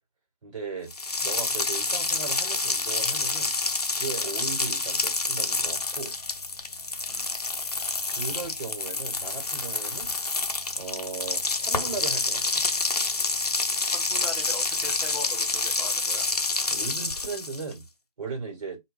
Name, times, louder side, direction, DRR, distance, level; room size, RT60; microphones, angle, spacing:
voice 1, 0.4-0.9 1.2-3.5 3.9-6.1 7.6-10.1 10.7-12.7 16.7-17.8 18.2-18.8, right 4 dB, 55° right, 1.3 m, -37 dB
sound 1, 0.9-17.7, left 3 dB, 85° left, 0.6 m, -28 dB
voice 2, 7.1-7.4 13.9-16.3, left 1 dB, ahead, 0.4 m, -40 dB
2.3 x 2.2 x 3.8 m
figure-of-eight pair, 140°, 19 cm